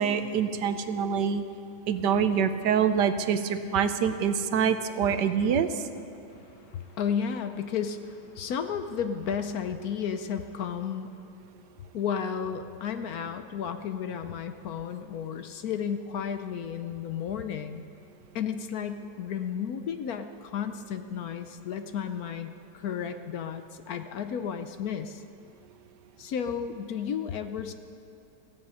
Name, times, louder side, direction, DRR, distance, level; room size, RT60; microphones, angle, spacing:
voice 1, 0.0-1.4 1.9-5.7, right 7 dB, 75° right, 10 dB, 1.4 m, -25 dB
voice 2, 6.5-11.1 11.9-17.8 18.3-25.2 26.2-27.7, left 7 dB, 65° left, 9 dB, 1.1 m, -33 dB
16.0 x 15.5 x 5.6 m, 2.8 s
omnidirectional pair, 1.9 m